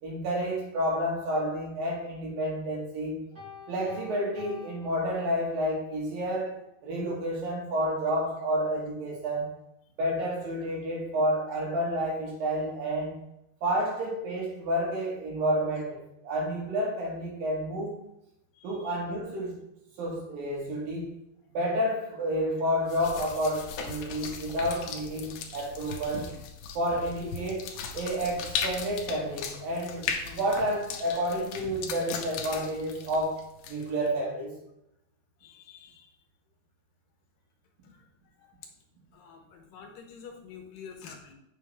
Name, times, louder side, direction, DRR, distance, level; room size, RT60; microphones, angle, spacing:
voice 1, 0.0-3.2 3.7-6.6 6.8-9.5 10.0-13.2 13.6-18.0 18.6-19.6 20.0-21.1 21.5-26.4 26.8-33.4 33.7-34.5, equal, 75° right, -2 dB, 3.7 m, -30 dB
Piano, 3.4-5.7, left 6 dB, 25° right, 2.7 m, -48 dB
voice 2, 18.5-18.9 35.4-36.1 37.8-38.0 38.4-38.6 39.1-41.3, left 6 dB, 75° left, 3 dB, 2.7 m, -48 dB
sound 1, 22.9-34.1, left 6 dB, 90° left, 2.7 m, -38 dB
8.2 x 6.8 x 3.5 m, 0.83 s
omnidirectional pair, 4.1 m